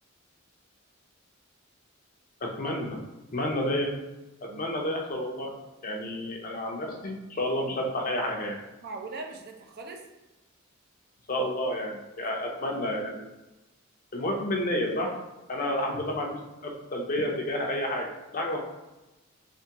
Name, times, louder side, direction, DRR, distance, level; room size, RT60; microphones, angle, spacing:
voice 1, 2.4-3.0 3.3-3.9 4.6-5.5 5.8-8.6 11.3-13.3 14.1-15.1 15.5-18.1 18.3-18.6, left 1 dB, 40° left, 1 dB, 0.6 m, -30 dB
voice 2, 8.8-10.0 12.2-12.3 12.6-12.8 15.6-16.0, right 3 dB, 50° right, 2 dB, 0.6 m, -41 dB
3.4 x 3.4 x 2.9 m, 1.0 s
head